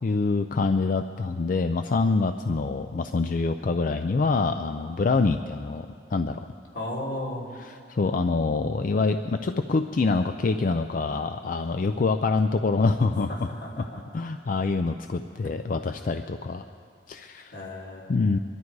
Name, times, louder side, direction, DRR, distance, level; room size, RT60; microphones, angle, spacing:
voice 1, 0.0-6.4 7.6-13.5 13.8-13.9 14.1-16.7 17.1-17.5 18.1-18.4, left 3 dB, 50° left, 8 dB, 0.4 m, -25 dB
voice 2, 6.7-7.5 13.3-14.0 17.5-18.1, left 1 dB, 85° left, -4 dB, 3.1 m, -34 dB
23.5 x 12.0 x 4.7 m, 2.4 s
head